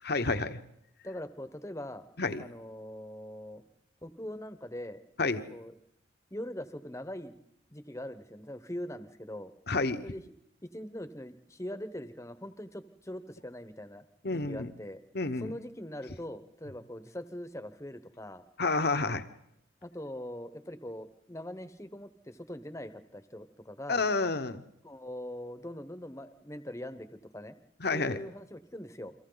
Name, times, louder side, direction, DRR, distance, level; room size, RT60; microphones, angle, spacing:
voice 1, 0.0-0.6 2.2-2.4 5.2-5.4 9.7-10.1 14.2-14.7 15.1-15.5 18.6-19.2 23.9-24.6 27.8-28.2, left 3 dB, 50° left, 9 dB, 1.1 m, -29 dB
voice 2, 1.0-2.0 2.4-3.6 4.0-5.0 5.5-5.7 6.3-7.3 7.7-9.5 10.0-10.2 10.6-15.0 15.4-18.4 19.8-24.1 24.8-27.6 27.9-29.1, left 1 dB, 15° left, 11 dB, 1.0 m, -42 dB
30.0 x 24.0 x 4.0 m, 0.81 s
head